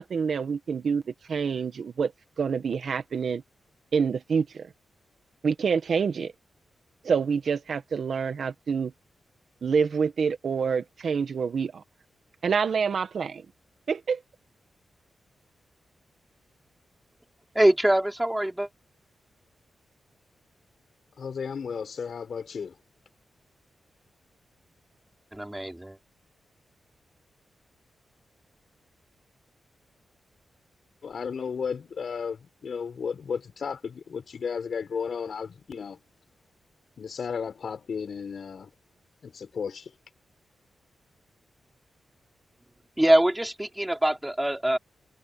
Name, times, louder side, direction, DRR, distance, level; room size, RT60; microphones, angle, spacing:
voice 1, 0.0-2.1 2.4-3.4 3.9-4.7 5.4-6.3 7.0-8.9 9.6-11.8 12.4-13.4 13.9-14.2, right 6 dB, 55° right, 1.6 m, -27 dB
voice 2, 17.6-18.7 25.3-26.0 43.0-44.8, right 1 dB, 10° right, 3.5 m, -23 dB
voice 3, 21.2-22.7 31.0-36.0 37.0-38.7 39.2-39.9, left 6 dB, 55° left, 7.1 m, -34 dB
wide cardioid pair, 145°, 0 cm